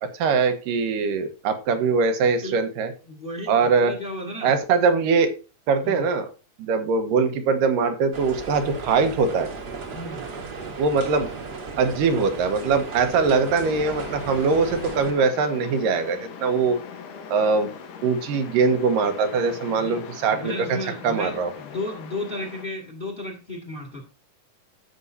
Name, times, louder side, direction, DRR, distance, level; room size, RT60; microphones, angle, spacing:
voice 1, 0.0-2.9 3.5-4.0 4.4-5.3 5.7-6.3 6.6-9.5 10.8-11.3 11.8-16.8 17.3-17.7 18.0-20.7 21.0-21.5, right 4 dB, 75° right, 7 dB, 2.8 m, -22 dB
voice 2, 2.2-2.6 3.0-4.5 5.8-6.0 9.9-10.3 19.8-20.0 20.3-24.0, left 1 dB, 20° left, 3 dB, 1.6 m, -34 dB
sound 1, 8.1-15.1, right 4 dB, 40° right, 1.6 m, -35 dB
sound 2, 13.6-22.6, left 6 dB, 70° left, 2.6 m, -40 dB
14.5 x 6.2 x 2.7 m, 0.32 s
omnidirectional pair, 3.9 m